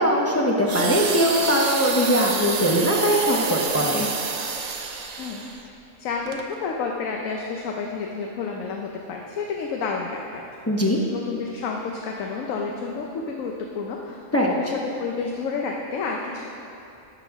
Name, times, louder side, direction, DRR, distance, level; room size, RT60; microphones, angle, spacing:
voice 1, 0.0-4.1 10.7-11.0 14.3-14.5, equal, 20° left, -2 dB, 0.4 m, -21 dB
sound 1, 0.7-5.6 6.3-6.4, right 5 dB, 65° right, 0.4 m, -28 dB
voice 2, 5.2-5.5 6.0-10.4 11.1-16.4, left 4 dB, 75° left, 0 dB, 1.1 m, -30 dB
11.5 x 7.0 x 3.5 m, 2.7 s
omnidirectional pair, 1.4 m